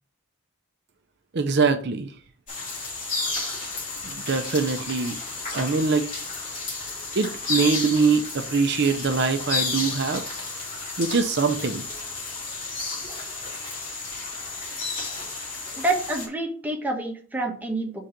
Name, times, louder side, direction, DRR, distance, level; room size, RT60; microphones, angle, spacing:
voice 1, 1.3-2.1 4.1-5.2 5.5-6.1 7.2-10.2 11.0-11.8, right 4 dB, 55° right, 7 dB, 0.6 m, -23 dB
sound 1, 2.5-16.3, left 3 dB, 40° left, 3.0 m, -32 dB
voice 2, 15.8-17.9, right 2 dB, 10° right, -1 dB, 1.3 m, -27 dB
5.1 x 3.9 x 5.8 m, 0.44 s
head